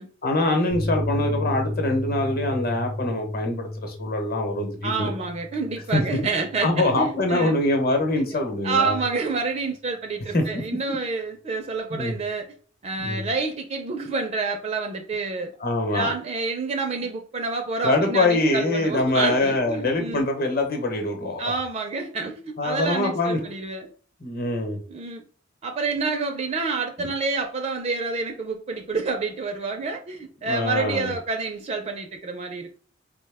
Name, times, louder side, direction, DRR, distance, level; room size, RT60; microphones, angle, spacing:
voice 1, 0.2-5.1 5.9-6.2 6.6-9.0 10.3-10.6 10.9-11.0 11.9-12.2 13.0-13.2 15.6-16.1 17.8-21.5 22.6-23.4 24.2-24.8 27.0-27.1 30.5-31.1, left 2 dB, 50° left, 0.9 m, -24 dB
sound 1, 0.7-8.2 8.5-8.6, left 1 dB, 75° left, 0.6 m, -33 dB
voice 2, 4.8-7.6 8.6-12.5 12.8-15.5 15.9-20.3 21.4-23.9 24.9-25.2 25.6-32.7, right 4 dB, 35° right, 0.4 m, -28 dB
4.0 x 2.1 x 3.3 m
head